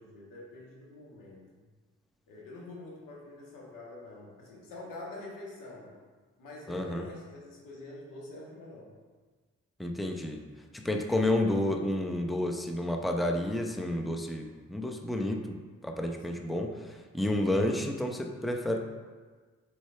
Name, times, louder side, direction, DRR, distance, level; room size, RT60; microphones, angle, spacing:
voice 1, 0.0-1.6 2.3-5.9 6.4-8.9 16.2-16.5, left 2 dB, 80° left, -3 dB, 1.7 m, -46 dB
voice 2, 6.7-7.1 9.8-10.4 10.7-18.8, left 1 dB, ahead, 3 dB, 0.7 m, -30 dB
6.3 x 4.6 x 3.4 m, 1.4 s
hypercardioid pair, 40°, 32 cm